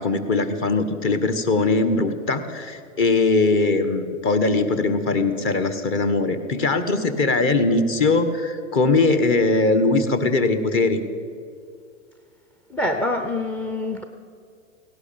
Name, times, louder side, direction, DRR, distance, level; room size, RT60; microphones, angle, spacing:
voice 1, 0.0-11.0, left 3 dB, 35° left, 10 dB, 1.4 m, -21 dB
voice 2, 12.7-14.0, left 1 dB, 5° left, 6 dB, 0.4 m, -25 dB
17.0 x 11.0 x 7.0 m, 2.3 s
hypercardioid pair, 125°, 39 cm